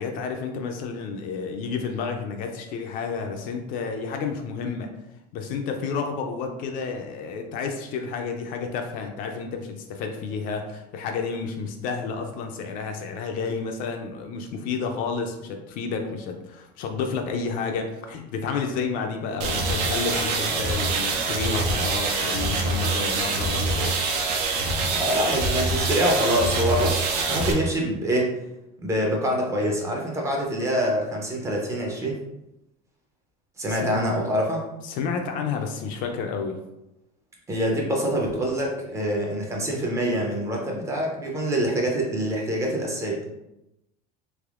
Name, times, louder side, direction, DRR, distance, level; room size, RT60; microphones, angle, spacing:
voice 1, 0.0-4.9 5.3-24.0 33.7-34.0 34.8-36.6, left 5 dB, 45° left, 4 dB, 0.4 m, -30 dB
sound 1, 19.4-27.5, right 3 dB, 85° right, 0.7 m, -25 dB
voice 2, 24.9-28.4 28.8-32.2 33.6-34.6 37.5-43.2, equal, 15° right, -1 dB, 0.5 m, -25 dB
3.3 x 3.0 x 2.4 m, 0.91 s
cardioid pair, 160°, 19 cm